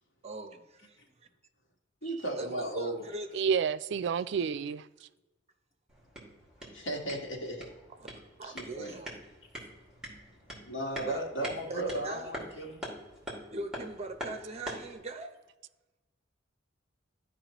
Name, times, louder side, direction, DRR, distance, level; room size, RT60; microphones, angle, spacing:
voice 1, 0.2-1.0 2.0-3.4 8.0-8.1 8.4-9.2 11.0-12.6 13.5-15.4, right 2 dB, 35° right, 0.7 m, -41 dB
voice 2, 2.0-3.0 6.7-7.7 8.5-9.0 10.6-12.8, right 1 dB, 85° left, 1.6 m, -35 dB
voice 3, 3.3-4.8, right 6 dB, 65° right, 0.3 m, -29 dB
sound 1, 5.9-15.0, equal, 5° right, 1.9 m, -44 dB
12.5 x 4.9 x 3.0 m
head